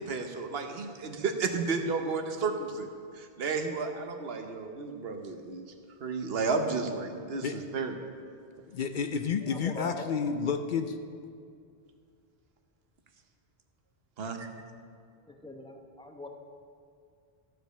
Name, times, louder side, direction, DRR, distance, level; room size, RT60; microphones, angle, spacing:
voice 1, 0.0-5.7 6.0-8.0 14.2-14.5, right 4 dB, 70° right, 5 dB, 1.1 m, -32 dB
voice 2, 8.7-11.0, left 6 dB, 60° left, 7 dB, 0.6 m, -30 dB
voice 3, 9.4-10.4 15.3-16.3, left 1 dB, 5° left, 3 dB, 0.7 m, -43 dB
14.0 x 5.1 x 6.7 m, 2.3 s
omnidirectional pair, 1.0 m